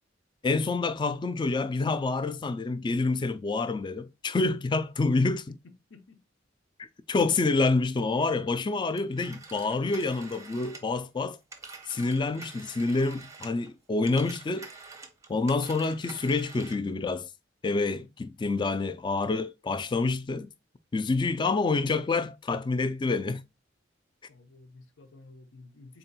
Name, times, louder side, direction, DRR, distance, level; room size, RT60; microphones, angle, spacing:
voice 1, 0.4-5.6 6.8-11.4 11.9-14.7 15.3-17.3 17.6-20.5 20.9-23.4, left 3 dB, 25° left, 0.3 m, -27 dB
voice 2, 5.9-6.2 24.3-26.0, left 3 dB, 90° left, 0.8 m, -52 dB
Telephone, 9.0-13.7 14.0-16.9, right 4 dB, 15° right, 0.6 m, -47 dB
4.0 x 3.7 x 2.3 m
head